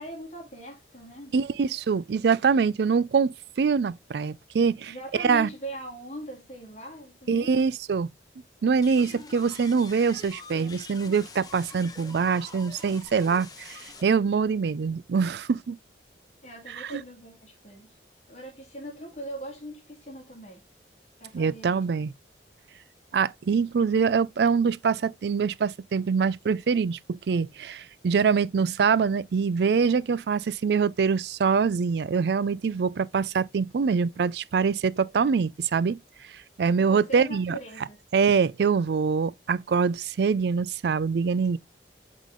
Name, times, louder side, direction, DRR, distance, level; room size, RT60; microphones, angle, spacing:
voice 1, 0.0-1.4 4.9-7.7 16.4-18.0 18.3-20.6 21.2-21.8 36.7-38.0, right 1 dB, 40° left, 1.9 m, -41 dB
voice 2, 1.3-5.5 7.3-8.1 8.6-15.8 16.8-17.0 21.3-22.1 23.1-36.0 36.6-37.6 38.1-41.6, right 5 dB, 65° right, 0.4 m, -24 dB
sound 1, 8.8-14.0, left 3 dB, 20° left, 0.9 m, -45 dB
8.3 x 3.7 x 3.6 m
head